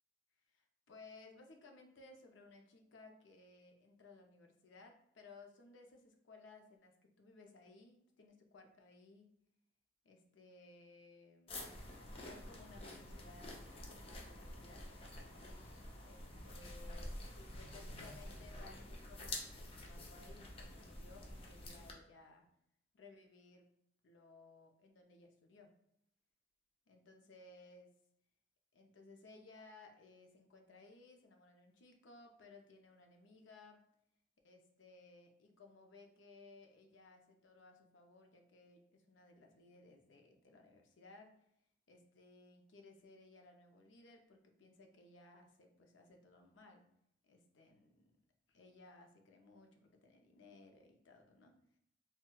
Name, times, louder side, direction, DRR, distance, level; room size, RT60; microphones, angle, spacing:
voice 1, 0.5-6.9 7.2-9.3 10.0-11.7 12.1-14.9 16.0-22.4 22.9-23.7 24.0-25.7 26.9-27.9 28.7-33.9 34.4-41.4 41.9-46.9 47.2-48.1 48.5-51.5, left 3 dB, 80° left, 3 dB, 0.6 m, -60 dB
sound 1, 11.5-21.9, left 1 dB, 30° left, 0.5 m, -49 dB
4.4 x 2.2 x 2.2 m, 0.74 s
head